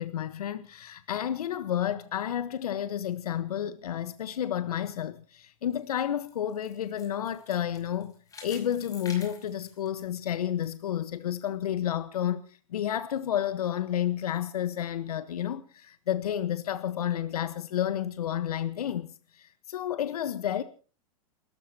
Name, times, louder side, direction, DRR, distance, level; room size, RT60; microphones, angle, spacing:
voice 1, 0.0-8.1 8.4-20.6, left 10 dB, 85° left, 1.4 m, -31 dB
sound 1, 5.7-10.7 11.0-11.1 11.7-11.8, left 4 dB, 20° left, 5.7 m, -49 dB
29.0 x 14.0 x 3.0 m
hypercardioid pair, 130°, 19 cm